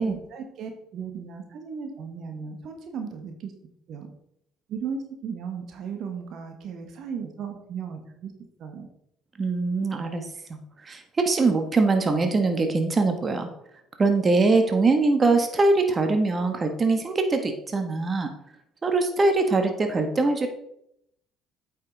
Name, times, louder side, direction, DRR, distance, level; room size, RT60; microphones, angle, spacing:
voice 1, 0.0-3.5 3.9-4.1 4.7-8.3 8.6-8.9, right 6 dB, 60° right, 5 dB, 1.3 m, -36 dB
voice 2, 9.4-10.2 10.5-13.5 14.0-18.3 18.8-20.5, right 3 dB, 35° right, 6 dB, 1.3 m, -22 dB
8.6 x 5.7 x 4.0 m, 0.76 s
hypercardioid pair, 60°, 0 cm